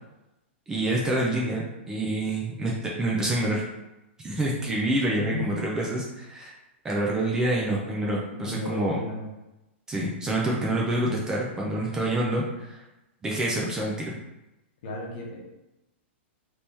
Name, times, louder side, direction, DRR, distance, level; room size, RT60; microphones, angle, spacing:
voice 1, 0.7-3.6 4.2-6.5 6.8-9.0 9.9-12.8 13.2-14.1, right 1 dB, 10° right, -3 dB, 0.4 m, -27 dB
voice 2, 5.1-5.6 8.2-9.3 14.8-15.4, left 2 dB, 50° left, -2 dB, 1.0 m, -34 dB
3.3 x 3.0 x 2.7 m, 0.95 s
supercardioid pair, 165°, 7 cm